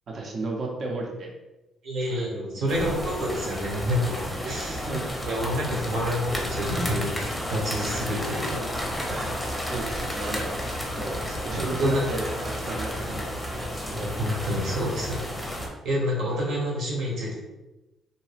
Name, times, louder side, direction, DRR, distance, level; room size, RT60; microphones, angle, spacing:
voice 1, 0.1-1.3 2.1-2.3 2.7-2.9 4.4-5.1 9.1-9.4 9.7-10.5 10.9-14.0 16.3-16.4, right 3 dB, 55° right, 0 dB, 0.7 m, -34 dB
voice 2, 1.8-4.9 5.2-8.8 11.3-12.0 13.0-13.1 13.9-15.2 15.8-17.3, equal, 75° right, -2 dB, 1.0 m, -28 dB
sound 1, 2.7-15.7, equal, 10° left, 0.7 m, -32 dB
2.8 x 2.1 x 3.3 m, 1.0 s
cardioid pair, 90°, 0 cm